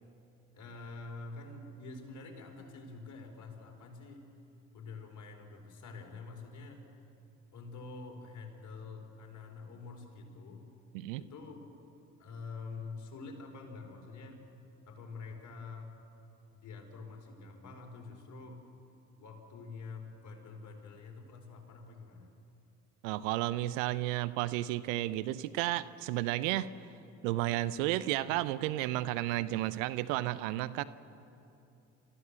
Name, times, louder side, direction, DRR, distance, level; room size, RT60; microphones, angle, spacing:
voice 1, 0.5-4.3 4.7-6.8 7.5-10.7 11.1-11.7 12.2-14.4 14.9-15.9 16.5-18.7 19.2-22.3 29.3-29.7, left 4 dB, 50° left, 2 dB, 4.8 m, -47 dB
voice 2, 23.0-26.7 27.2-30.8, right 15 dB, 75° right, 15 dB, 0.8 m, -32 dB
29.0 x 15.0 x 7.5 m, 2.7 s
hypercardioid pair, 55°, 39 cm